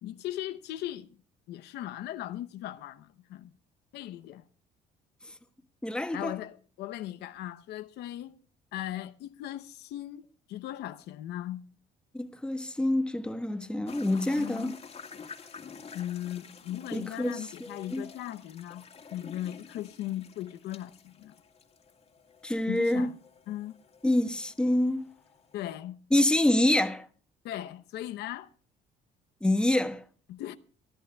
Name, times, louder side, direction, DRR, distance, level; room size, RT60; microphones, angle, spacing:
voice 1, 0.0-1.2 1.5-3.5 3.9-4.4 6.1-8.4 8.7-11.6 14.4-14.8 15.9-18.8 19.1-21.3 22.7-23.2 23.5-23.8 25.5-26.0 27.4-28.5 30.3-30.6, left 13 dB, 80° left, 0.8 m, -38 dB
voice 2, 5.8-6.3 12.1-14.8 16.9-17.5 17.9-18.1 22.4-23.1 24.0-25.0 26.1-27.0 29.4-30.0, left 1 dB, 5° left, 1.1 m, -26 dB
sound 1, 13.8-25.8, left 5 dB, 35° left, 2.2 m, -50 dB
24.5 x 11.0 x 2.3 m
cardioid pair, 110°, 17 cm